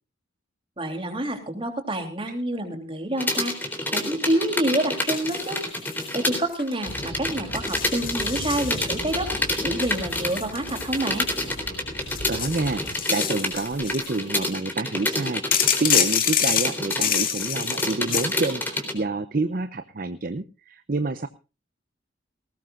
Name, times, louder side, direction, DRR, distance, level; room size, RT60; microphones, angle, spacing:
voice 1, 0.8-3.5 3.9-5.6 6.1-9.3 9.6-11.3, right 1 dB, 30° right, 5 dB, 3.4 m, -27 dB
sound 1, 3.2-6.4 6.7-18.9, left 1 dB, 10° left, 3.6 m, -28 dB
sound 2, 5.1-6.2 6.5-6.9 7.5-9.2 9.8-11.5 12.0-14.2 15.5-18.3, left 9 dB, 45° left, 2.5 m, -27 dB
sound 3, 6.8-13.0, equal, 85° left, 4.6 m, -39 dB
voice 2, 12.0-21.3, right 3 dB, 45° right, 11 dB, 0.8 m, -28 dB
19.5 x 18.5 x 2.5 m, 0.31 s
head